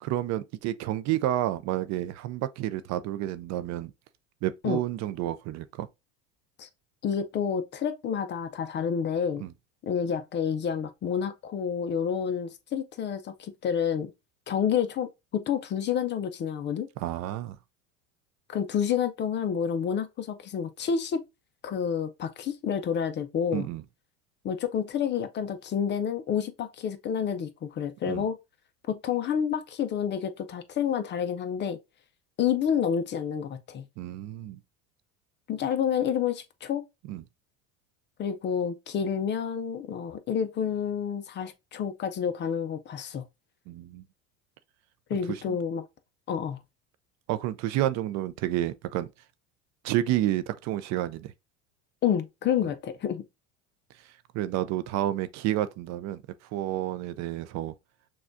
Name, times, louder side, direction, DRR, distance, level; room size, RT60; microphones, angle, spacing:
voice 1, 0.0-3.9 4.4-5.9 9.4-9.5 17.0-17.6 23.5-23.8 28.1-28.3 34.0-34.6 37.1-37.2 43.7-44.0 45.1-45.6 47.3-49.1 49.8-51.3 52.6-52.7 54.3-57.7, right 13 dB, 50° right, 0.4 m, -30 dB
voice 2, 7.0-9.4 9.8-14.1 14.5-16.9 18.5-21.2 21.6-23.7 24.4-28.4 28.9-31.8 32.4-33.9 35.5-36.8 38.2-43.2 45.1-45.9 46.3-46.6 52.0-53.2, left 8 dB, 30° left, 0.4 m, -29 dB
6.1 x 2.3 x 2.5 m
supercardioid pair, 110°, 37 cm